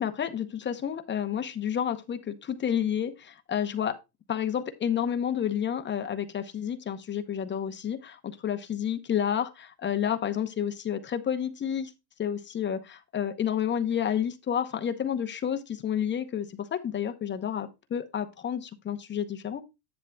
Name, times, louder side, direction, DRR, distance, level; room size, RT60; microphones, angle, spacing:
voice 1, 0.0-4.0 4.3-11.9 12.2-19.6, left 9 dB, 25° left, 9 dB, 0.7 m, -30 dB
10.5 x 7.9 x 2.2 m, 0.24 s
supercardioid pair, 120°, 49 cm